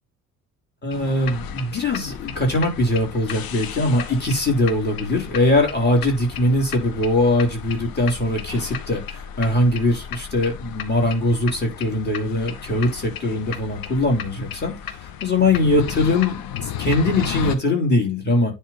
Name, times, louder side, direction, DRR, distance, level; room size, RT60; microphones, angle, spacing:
voice 1, 0.8-16.5 16.8-18.5, left 1 dB, 20° left, 0 dB, 3.7 m, -21 dB
sound 1, 0.9-17.5, left 9 dB, 50° left, 1.1 m, -34 dB
10.0 x 3.4 x 4.1 m, 0.23 s
figure-of-eight pair, 50°, 45 cm